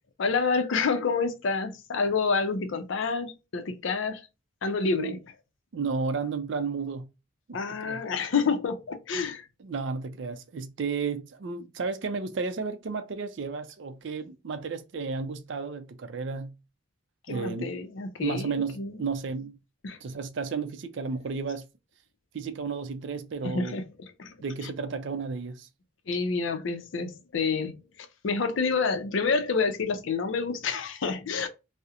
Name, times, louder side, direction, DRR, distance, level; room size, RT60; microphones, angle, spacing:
voice 1, 0.2-4.2 4.6-5.2 7.5-9.4 17.3-18.9 19.8-20.0 23.4-23.8 24.2-24.3 24.6-24.7 26.1-27.8 28.2-31.5, left 4 dB, 65° left, 0.5 m, -28 dB
voice 2, 5.7-7.1 7.5-8.0 9.6-16.5 17.3-17.8 18.2-19.6 20.0-21.7 22.3-23.8 24.4-25.7, right 5 dB, 60° right, 0.4 m, -33 dB
2.4 x 2.0 x 2.7 m
head